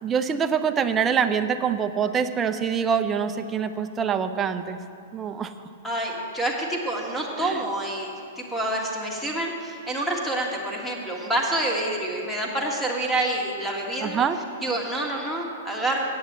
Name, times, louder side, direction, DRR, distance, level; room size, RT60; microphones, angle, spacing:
voice 1, 0.0-4.8 5.1-5.5 7.4-7.6 14.0-14.4, right 7 dB, 20° right, 8 dB, 0.5 m, -25 dB
voice 2, 5.8-14.2 14.6-16.0, right 1 dB, 5° left, -2 dB, 1.7 m, -27 dB
8.5 x 8.0 x 7.5 m, 2.6 s
hypercardioid pair, 135°, 0 cm